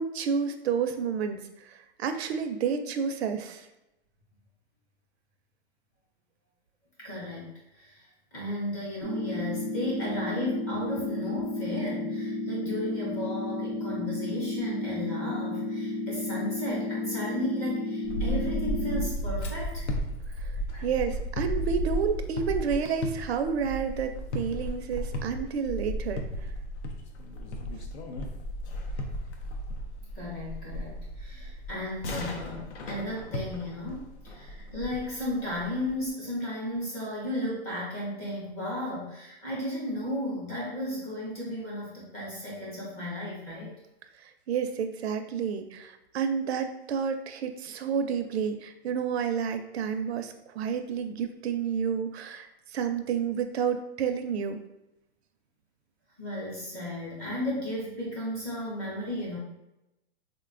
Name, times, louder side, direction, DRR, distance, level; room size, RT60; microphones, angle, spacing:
voice 1, 0.0-3.7 20.4-20.5 20.8-26.3 44.2-54.6, right 6 dB, 75° right, 7 dB, 0.5 m, -30 dB
voice 2, 7.0-19.9 20.7-20.8 30.1-43.8 56.2-59.4, left 1 dB, 15° left, -6 dB, 0.5 m, -34 dB
sound 1, 9.0-19.0, left 2 dB, 40° left, 0.8 m, -32 dB
sound 2, 18.0-36.1, equal, 90° left, 0.7 m, -34 dB
3.7 x 2.2 x 2.4 m, 0.90 s
hypercardioid pair, 170°, 33 cm